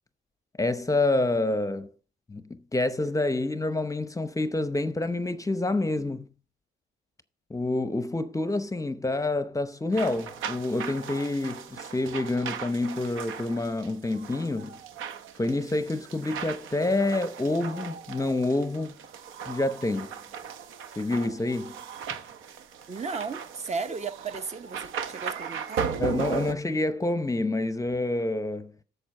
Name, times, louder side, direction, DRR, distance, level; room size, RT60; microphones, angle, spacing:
voice 1, 0.6-1.9 2.3-6.3 7.5-14.8 15.4-19.0 19.5-20.2 21.0-21.8 26.0-28.8, left 2 dB, 15° left, 0.7 m, -28 dB
sound 1, 9.9-26.5, right 7 dB, 85° right, 1.0 m, -37 dB
voice 2, 22.9-25.9, right 4 dB, 35° right, 0.9 m, -35 dB
8.5 x 6.9 x 5.3 m
cardioid pair, 90°, 20 cm